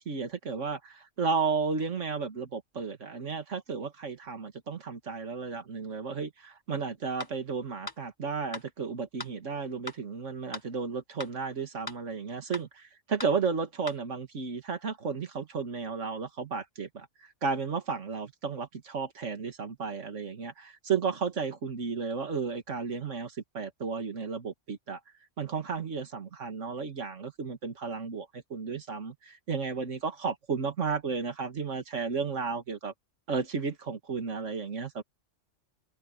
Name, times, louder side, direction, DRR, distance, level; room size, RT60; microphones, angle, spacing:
voice 1, 0.0-25.0 25.4-32.9 33.3-35.0, right 5 dB, 80° right, 2.2 m, -33 dB
sound 1, 7.2-7.3 7.9-8.0 8.5-8.6 9.2-9.3 9.9-10.0 10.5-10.7 11.2-11.3 11.9-12.0 12.5-12.7 13.2-13.3 13.9-14.0, left 2 dB, 20° left, 1.2 m, -39 dB
omnidirectional pair, 1.2 m